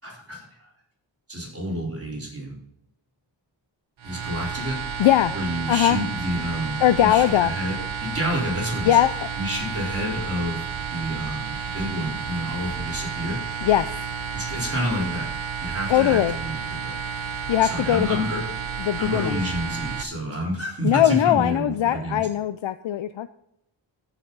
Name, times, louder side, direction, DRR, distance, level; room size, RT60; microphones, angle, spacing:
voice 1, 0.0-0.7 1.3-2.6 4.0-5.0 5.3-9.0 9.4-13.4 14.3-15.3 15.6-16.6 16.8-17.0 17.6-18.4 19.0-22.2, equal, 30° right, -4 dB, 4.0 m, -29 dB
sound 1, 4.0-20.0, right 6 dB, 85° right, 1.0 m, -32 dB
voice 2, 5.0-5.3 5.7-6.0 6.8-7.5 8.8-9.3 13.6-13.9 15.9-16.4 17.5-18.2 18.8-19.4 20.8-23.3, left 12 dB, 75° left, 12 dB, 0.5 m, -20 dB
14.0 x 5.8 x 4.0 m, 0.81 s
wide cardioid pair, 80°, 46 cm